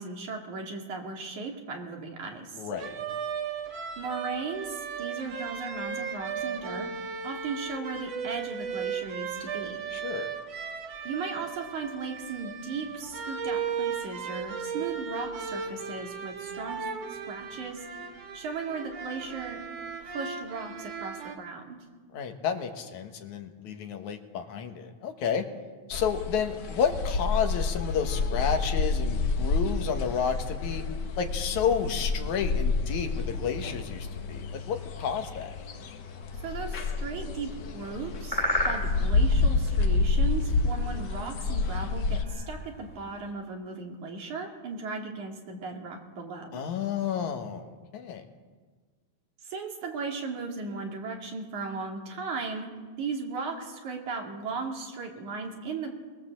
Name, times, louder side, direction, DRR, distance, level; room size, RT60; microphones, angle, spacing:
voice 1, 0.0-2.6 4.0-6.9 7.2-9.8 11.0-19.6 20.0-21.8 36.4-46.6 49.4-52.7 53.0-55.9, right 4 dB, 85° right, 2 dB, 4.0 m, -37 dB
voice 2, 2.5-2.9 9.9-10.3 22.1-25.5 25.9-30.8 31.2-35.5 46.5-48.2, left 7 dB, 85° left, 6 dB, 2.9 m, -31 dB
sound 1, 2.8-21.4, right 6 dB, 60° right, 2.6 m, -36 dB
sound 2, 25.9-42.2, left 3 dB, 55° left, 1.2 m, -29 dB
sound 3, 33.3-43.3, equal, 15° left, 2.4 m, -38 dB
22.5 x 20.5 x 7.6 m, 1.5 s
omnidirectional pair, 3.3 m